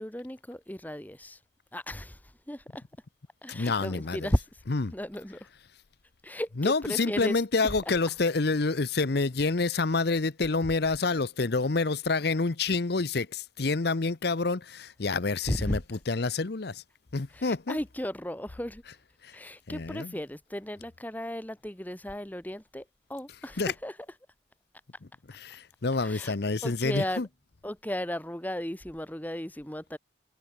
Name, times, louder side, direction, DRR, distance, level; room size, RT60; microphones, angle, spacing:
voice 1, 0.0-1.4 1.7-2.2 2.5-2.8 3.4-4.4 4.9-5.5 6.2-7.4 8.0-8.1 15.4-15.8 17.3-18.8 19.3-22.8 23.1-23.9 26.0-26.3 26.6-27.2 27.6-30.0, equal, 10° left, 1.2 m, -35 dB
voice 2, 3.5-4.3 4.7-4.9 6.6-16.8 17.1-17.8 19.2-19.3 19.7-20.2 23.6-23.7 25.3-27.3, left 3 dB, 55° left, 0.8 m, -28 dB
head